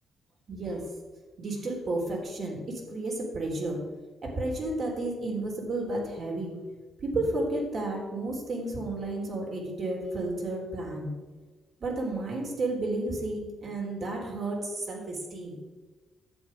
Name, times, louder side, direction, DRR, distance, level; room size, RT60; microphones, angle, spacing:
voice 1, 0.5-0.8 1.4-3.8 4.2-6.6 7.0-11.1 11.8-15.6, right 2 dB, 55° right, 0 dB, 3.9 m, -32 dB
11.0 x 8.4 x 5.3 m, 1.3 s
cardioid pair, 80°, 0 cm